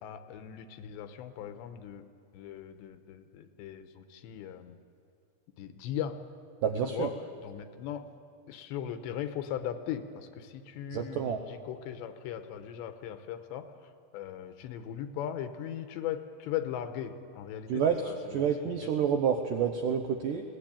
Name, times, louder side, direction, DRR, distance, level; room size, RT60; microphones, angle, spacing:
voice 1, 0.0-4.8 5.6-6.2 6.8-7.1 7.4-8.1 8.5-18.9, left 10 dB, 80° left, 9 dB, 3.1 m, -39 dB
voice 2, 6.6-7.1 10.9-11.4 17.7-20.4, right 7 dB, 80° right, 4 dB, 1.9 m, -29 dB
22.0 x 17.5 x 8.8 m, 2.3 s
omnidirectional pair, 5.1 m